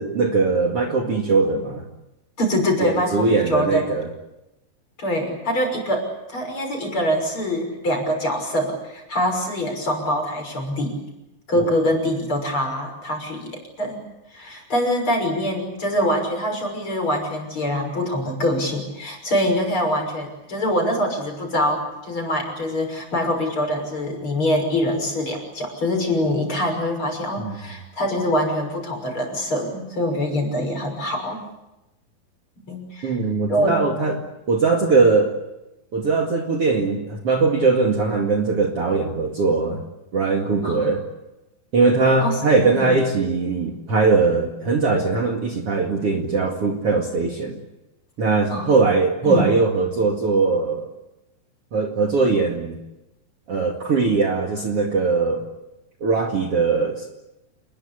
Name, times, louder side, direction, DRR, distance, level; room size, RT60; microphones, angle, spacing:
voice 1, 0.0-1.9 2.8-4.1 11.6-11.7 27.4-27.5 33.0-35.3 35.9-39.8 40.1-41.0 41.7-47.6 48.2-50.9 51.7-52.8 53.5-55.5 56.0-57.0, right 4 dB, 45° right, 2 dB, 2.8 m, -20 dB
voice 2, 2.4-3.8 5.0-11.0 11.5-14.0 14.3-31.4 32.6-33.2 33.5-33.8 40.6-40.9 42.2-42.3 42.6-43.0 48.5-48.7 49.2-49.5, equal, 35° left, 4 dB, 6.8 m, -24 dB
28.5 x 21.0 x 8.4 m, 0.94 s
omnidirectional pair, 4.3 m